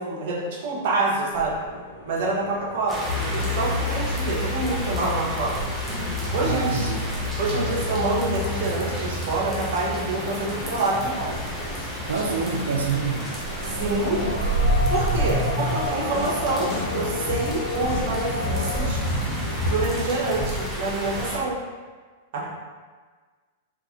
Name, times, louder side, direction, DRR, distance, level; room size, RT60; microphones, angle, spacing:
voice 1, 0.0-1.5 2.1-5.6 6.3-6.9 7.4-11.4 13.8-14.3 14.9-19.0 19.7-21.5 22.3-22.5, right 2 dB, 60° right, -4 dB, 0.8 m, -27 dB
sound 1, 1.3-18.9, equal, 90° left, 0.6 m, -32 dB
sound 2, 2.9-21.4, equal, 5° right, 0.7 m, -34 dB
sound 3, 3.1-20.1, left 2 dB, 45° left, 0.7 m, -31 dB
voice 2, 6.4-7.0 7.5-7.8 12.1-13.3, right 5 dB, 85° right, 2 dB, 0.4 m, -27 dB
2.6 x 2.3 x 3.6 m, 1.4 s
hypercardioid pair, 115°, 0 cm